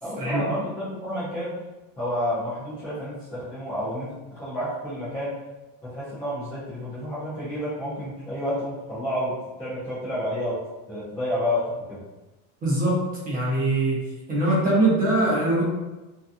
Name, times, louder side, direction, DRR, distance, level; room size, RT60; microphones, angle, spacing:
voice 1, 0.0-1.6 2.0-5.4 5.8-10.6 10.9-12.0, left 1 dB, 10° left, -13 dB, 0.3 m, -30 dB
voice 2, 12.6-13.0 13.2-14.0 14.3-15.6, right 2 dB, 20° right, -6 dB, 0.6 m, -22 dB
2.6 x 2.3 x 2.4 m, 1.1 s
cardioid pair, 170°, 43 cm